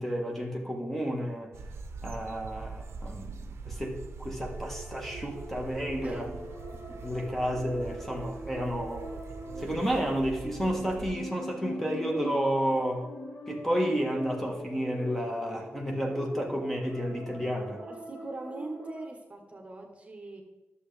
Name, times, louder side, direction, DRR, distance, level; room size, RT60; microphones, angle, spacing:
voice 1, 0.0-1.5 2.0-6.3 7.0-9.1 9.6-13.0 13.5-17.8, equal, 5° left, 0 dB, 1.4 m, -31 dB
sound 1, 1.5-11.1, right 4 dB, 85° right, 0.6 m, -43 dB
sound 2, 4.5-19.0, equal, 90° left, 2.1 m, -43 dB
voice 2, 6.0-6.5 17.8-20.4, right 2 dB, 30° right, 2 dB, 1.3 m, -42 dB
11.0 x 7.1 x 3.4 m, 1.0 s
wide cardioid pair, 90°, 4 cm